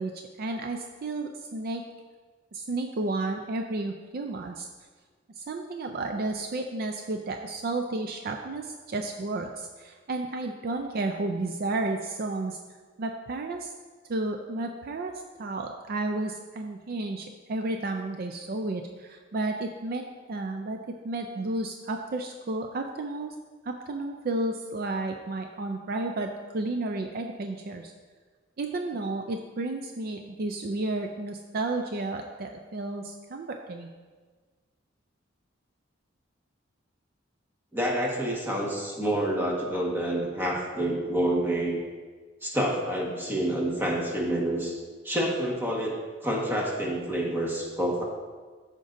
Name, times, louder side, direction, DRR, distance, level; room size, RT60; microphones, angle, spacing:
voice 1, 0.0-1.8 2.5-4.7 5.4-12.6 13.0-13.7 14.1-20.8 21.0-23.3 23.6-27.9 28.6-33.9, right 2 dB, 50° right, 4 dB, 0.4 m, -32 dB
voice 2, 37.7-41.8 42.4-44.7 45.0-45.9 46.2-48.0, right 1 dB, 10° right, -2 dB, 1.4 m, -28 dB
13.5 x 5.2 x 2.6 m, 1.4 s
head